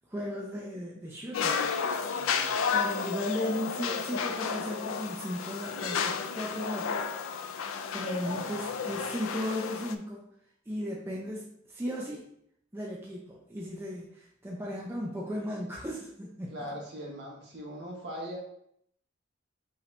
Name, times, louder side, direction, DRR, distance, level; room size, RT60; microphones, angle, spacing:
voice 1, 0.1-2.0 2.7-7.1 7.9-10.3 10.7-12.2 12.7-16.6, equal, 10° right, -3 dB, 0.5 m, -36 dB
sound 1, 1.3-9.9, left 5 dB, 80° left, 0.4 m, -32 dB
voice 2, 2.1-2.5 8.2-9.1 16.5-18.4, equal, 55° right, -4 dB, 1.4 m, -41 dB
5.6 x 2.7 x 3.3 m, 0.71 s
head